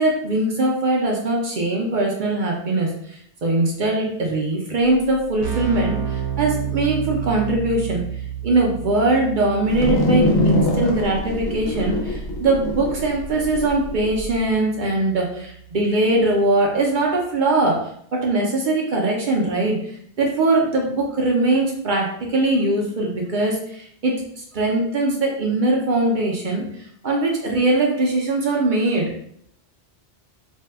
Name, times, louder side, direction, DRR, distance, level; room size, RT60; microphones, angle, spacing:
voice 1, 0.0-8.0 8.4-17.8 18.1-19.8 20.2-26.7 27.0-29.0, right 2 dB, 55° right, -1 dB, 0.7 m, -21 dB
Keyboard (musical), 5.1-15.7, right 9 dB, 85° right, 1.0 m, -32 dB
sound 1, 9.7-14.3, left 1 dB, 85° left, 1.0 m, -23 dB
2.7 x 2.2 x 3.3 m, 0.68 s
omnidirectional pair, 1.1 m